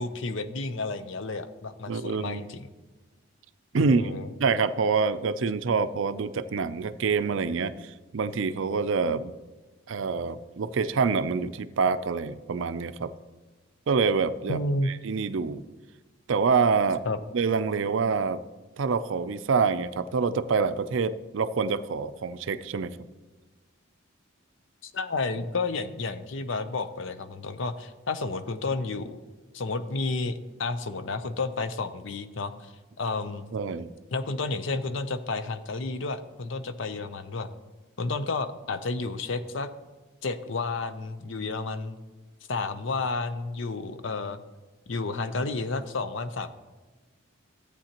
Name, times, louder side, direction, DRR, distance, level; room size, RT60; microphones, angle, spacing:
voice 1, 0.0-2.7 3.7-4.3 14.5-14.9 17.1-17.2 24.8-29.2 29.5-32.7 33.0-33.5 34.1-37.5 38.0-39.7 40.2-42.0 42.5-44.4 44.9-46.5, left 3 dB, 65° left, 11 dB, 0.6 m, -31 dB
voice 2, 1.9-2.4 3.7-4.1 4.4-9.3 9.9-13.1 13.9-14.6 14.9-15.6 16.3-17.0 17.3-18.4 18.8-22.9 33.5-33.9, right 5 dB, 65° right, 13 dB, 0.4 m, -26 dB
14.5 x 8.4 x 2.9 m, 1.2 s
head